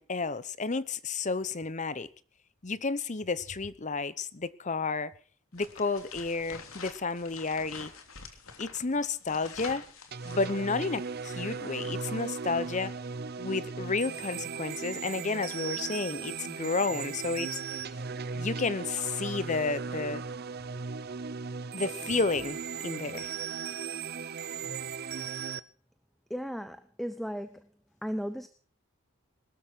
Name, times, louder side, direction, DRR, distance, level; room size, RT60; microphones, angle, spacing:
voice 1, 0.0-2.1 2.6-5.1 5.5-7.9 8.6-9.8 10.2-12.9 13.4-17.9 18.3-20.2 21.7-23.3, left 4 dB, 35° left, 0.9 m, -31 dB
sound 1, 5.5-11.0, left 5 dB, 85° left, 3.2 m, -47 dB
sound 2, 10.1-25.6, right 5 dB, 50° right, 0.7 m, -37 dB
voice 2, 26.3-27.7 28.0-28.5, equal, ahead, 0.8 m, -35 dB
20.5 x 13.0 x 4.5 m
head